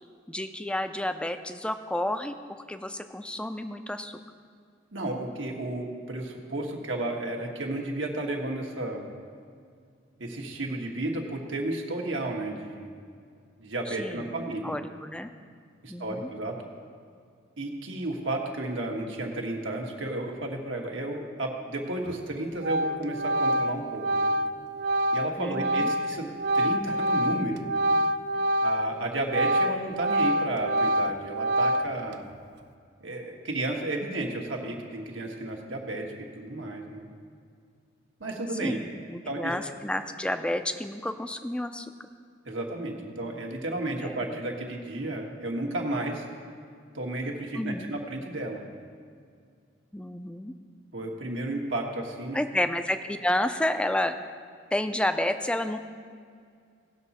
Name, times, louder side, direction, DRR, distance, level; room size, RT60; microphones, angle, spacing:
voice 1, 0.3-4.2 13.9-15.3 15.9-16.3 25.4-25.9 38.6-41.9 44.0-44.3 47.5-47.9 49.9-50.5 52.3-54.1 54.7-55.8, left 1 dB, 5° left, 9 dB, 0.4 m, -30 dB
voice 2, 4.9-9.1 10.2-12.9 13.6-14.7 15.8-16.6 17.6-24.3 25.1-27.7 28.6-32.3 33.0-37.1 38.2-38.8 39.3-39.5 42.4-46.2 46.9-48.6 50.9-52.4, right 2 dB, 85° right, 1 dB, 1.5 m, -33 dB
Organ, 22.1-22.3 22.6-29.0 29.2-32.1, right 1 dB, 60° right, 0.5 m, -26 dB
18.0 x 6.0 x 4.2 m, 2.2 s
head